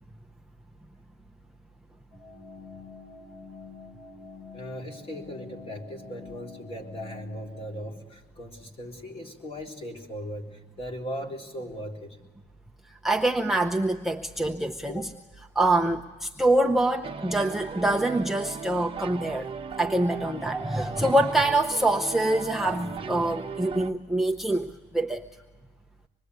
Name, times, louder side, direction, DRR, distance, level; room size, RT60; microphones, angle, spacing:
sound 1, 2.1-7.8, left 4 dB, 65° left, 5.4 m, -46 dB
voice 1, 4.5-12.2 14.9-15.1, equal, 30° left, 1 dB, 3.7 m, -38 dB
voice 2, 13.0-15.1 15.5-19.5 19.8-25.2, right 1 dB, ahead, 1 dB, 0.8 m, -25 dB
sound 2, 17.0-23.9, right 5 dB, 30° right, 1.0 m, -37 dB
25.5 x 21.0 x 8.2 m, 1.2 s
cardioid pair, 145°, 19 cm